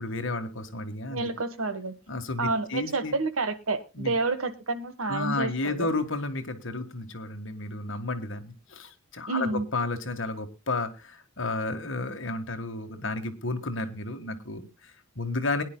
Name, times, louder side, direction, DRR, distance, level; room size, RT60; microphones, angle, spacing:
voice 1, 0.0-1.3 2.1-3.1 3.9-4.1 5.0-15.6, left 2 dB, 60° left, 1.7 m, -32 dB
voice 2, 1.1-1.9 2.4-5.9 9.3-9.7, right 3 dB, 75° right, 1.4 m, -29 dB
22.0 x 10.5 x 2.3 m
head